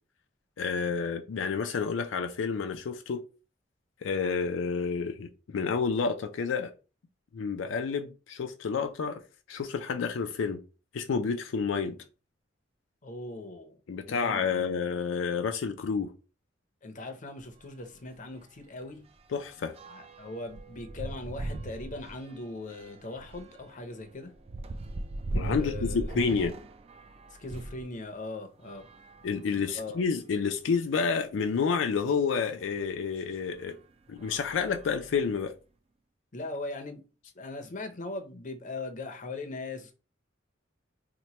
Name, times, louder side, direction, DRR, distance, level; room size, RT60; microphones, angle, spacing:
voice 1, 0.6-3.2 4.0-6.7 7.3-9.2 9.5-10.6 10.9-12.0 13.9-16.1 19.3-19.7 25.3-26.6 29.2-33.8 34.1-35.5, left 5 dB, 80° left, 0.4 m, -29 dB
voice 2, 13.0-13.7 14.1-14.7 16.8-19.0 19.9-24.3 25.6-26.3 27.4-28.8 29.7-30.0 36.3-37.0 37.3-39.9, left 2 dB, 45° left, 0.6 m, -40 dB
sound 1, 17.4-17.6 17.9-18.0 18.4-27.9 28.6-29.9 30.6-30.7 30.9-31.0 32.7-32.9 33.5-33.7 34.1-35.4, right 2 dB, 30° right, 0.3 m, -39 dB
2.9 x 2.1 x 4.1 m
head